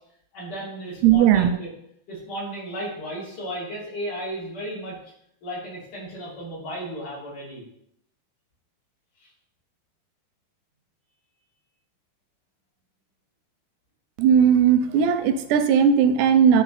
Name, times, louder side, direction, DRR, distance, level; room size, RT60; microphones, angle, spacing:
voice 1, 0.3-1.7 2.1-5.0 5.4-7.6 9.2-9.3, equal, 50° left, -9 dB, 4.6 m, -34 dB
voice 2, 1.0-1.5 14.2-16.6, right 8 dB, 85° right, 9 dB, 2.7 m, -17 dB
12.0 x 4.1 x 3.3 m, 0.74 s
omnidirectional pair, 4.8 m